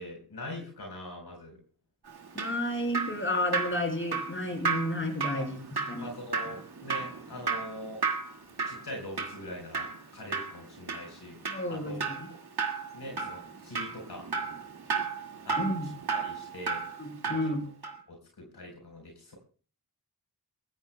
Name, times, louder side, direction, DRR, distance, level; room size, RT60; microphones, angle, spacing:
voice 1, 0.0-1.6 5.3-5.5 6.0-8.0 8.6-11.4 11.7-12.1 12.9-14.3 15.4-16.8 17.2-17.4 18.1-19.4, left 1 dB, 85° left, 1 dB, 4.2 m, -42 dB
Drip, 2.1-17.5 17.8-18.0, right 5 dB, 75° right, 2.1 m, -34 dB
voice 2, 2.3-5.6 5.9-6.1 11.5-12.3 15.6-15.9 17.0-17.6, left 1 dB, 30° left, 3 dB, 4.9 m, -31 dB
23.0 x 15.5 x 2.2 m, 0.40 s
wide cardioid pair, 70°, 38 cm